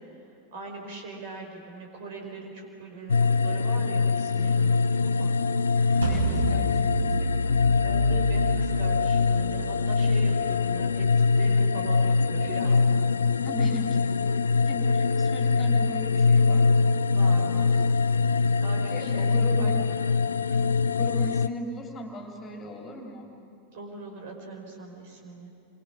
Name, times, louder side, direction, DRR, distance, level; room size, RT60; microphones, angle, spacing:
voice 1, 0.5-5.4 7.8-12.9 13.9-14.3 14.9-15.0 17.1-17.8 18.6-19.3 19.6-19.7 20.5-20.6 23.7-25.5, right 3 dB, 50° right, 1 dB, 5.0 m, -41 dB
sound 1, 3.1-21.5, left 4 dB, 70° left, 0.5 m, -23 dB
voice 2, 5.7-7.9 13.4-14.0 14.7-16.7 18.9-19.8 20.9-23.3, left 1 dB, 25° left, 2 dB, 3.3 m, -38 dB
sound 2, 6.0-11.1, right 2 dB, 70° right, 5.3 m, -31 dB
29.0 x 24.0 x 6.4 m, 2.5 s
figure-of-eight pair, 90°, 0 cm